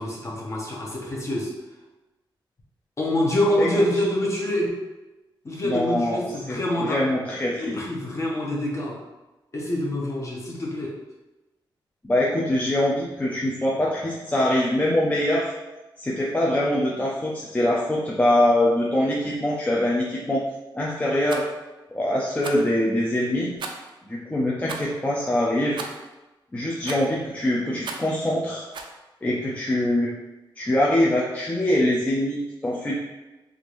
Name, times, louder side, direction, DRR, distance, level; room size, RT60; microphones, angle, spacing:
voice 1, 0.0-1.5 3.0-4.8 5.4-7.1 7.6-9.0 9.5-11.0, left 1 dB, 35° left, -3 dB, 0.9 m, -26 dB
voice 2, 5.6-7.8 12.0-15.5 16.0-20.5 20.7-21.4 21.9-23.5 24.1-25.8 26.5-28.6 29.2-30.1 30.6-32.9, left 1 dB, 15° left, -5 dB, 0.5 m, -23 dB
Rattle, 21.2-21.5 22.4-22.7 23.6-23.9 24.6-24.9 25.8-26.1 26.8-27.2 27.8-28.2 28.7-29.0, right 4 dB, 65° right, 0.4 m, -36 dB
3.5 x 2.5 x 3.0 m, 1.1 s
cardioid pair, 105°, 9 cm